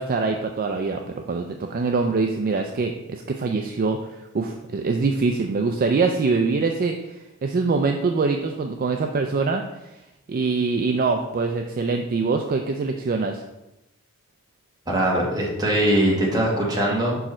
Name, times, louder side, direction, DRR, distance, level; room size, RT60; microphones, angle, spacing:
voice 1, 0.0-9.9 10.3-13.4, right 4 dB, 40° right, 4 dB, 0.4 m, -24 dB
voice 2, 14.9-17.2, right 1 dB, 20° right, -3 dB, 1.6 m, -21 dB
5.9 x 4.7 x 4.3 m, 0.96 s
head